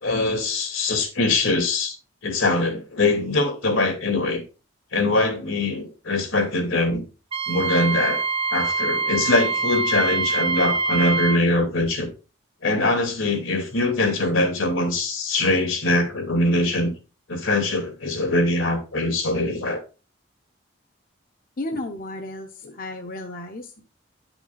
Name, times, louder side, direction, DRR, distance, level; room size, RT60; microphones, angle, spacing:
voice 1, 0.0-2.0 2.2-4.4 4.9-7.0 7.5-8.2 8.5-12.1 12.6-16.9 17.3-19.8, left 2 dB, 80° left, 2.7 m, -22 dB
Wind instrument woodwind instrument, 7.3-11.4, right 4 dB, 30° right, 0.4 m, -24 dB
voice 2, 21.6-23.7, left 2 dB, 45° left, 0.8 m, -33 dB
10.0 x 6.0 x 3.9 m
head